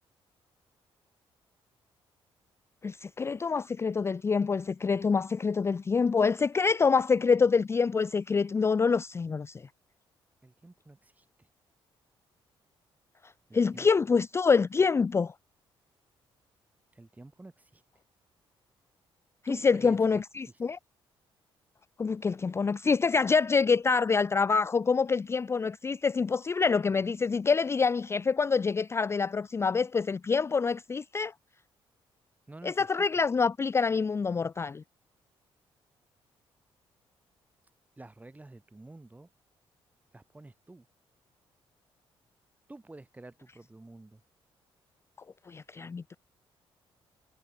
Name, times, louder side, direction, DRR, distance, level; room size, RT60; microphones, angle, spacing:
voice 1, 2.8-9.6 13.5-15.3 19.4-20.8 22.0-31.3 32.6-34.8 45.5-46.2, left 5 dB, 25° left, 0.4 m, -26 dB
voice 2, 10.4-11.5 13.5-13.9 16.9-17.8 19.5-20.5 32.5-33.1 38.0-39.3 40.1-40.9 42.7-44.2, right 2 dB, 15° right, 2.1 m, -49 dB
cardioid pair, 85°, 10 cm